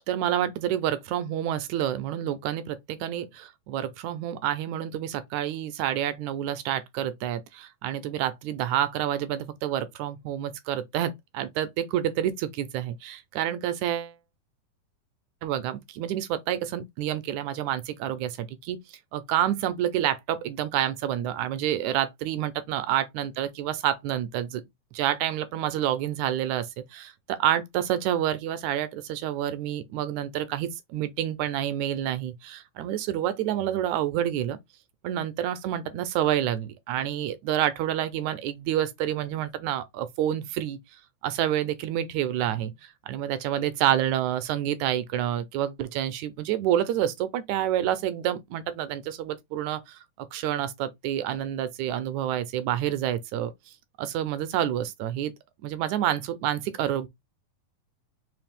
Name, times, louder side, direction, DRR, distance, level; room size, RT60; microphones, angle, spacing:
voice 1, 0.1-14.1 15.4-18.8 19.1-24.6 24.9-34.6 35.0-40.8 41.2-53.5 54.0-55.3 55.6-57.1, right 11 dB, 80° right, 1.7 m, -28 dB
4.9 x 3.1 x 3.4 m
omnidirectional pair, 3.7 m